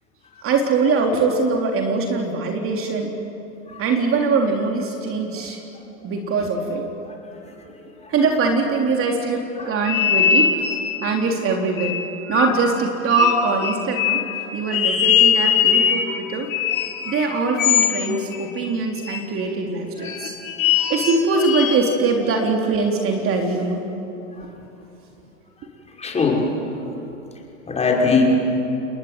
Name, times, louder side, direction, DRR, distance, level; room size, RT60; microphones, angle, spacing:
voice 1, 0.4-3.1 3.8-5.6 6.0-6.9 8.1-10.5 11.0-12.0 12.3-14.2 14.5-16.5 17.0-20.3 20.9-23.8, right 4 dB, 35° right, 2 dB, 3.5 m, -22 dB
voice 2, 7.1-7.6 8.0-8.1 9.6-9.7 24.4-24.5 26.0-26.5 27.7-28.2, left 4 dB, 15° left, -1 dB, 5.7 m, -22 dB
sound 1, 9.9-11.1 11.8-12.7 13.1-14.4 14.7-16.2 16.5-18.7 19.0-19.2 20.0-21.8, left 8 dB, 85° left, 3.7 m, -21 dB
29.5 x 21.0 x 9.6 m, 3.0 s
hypercardioid pair, 115°, 40 cm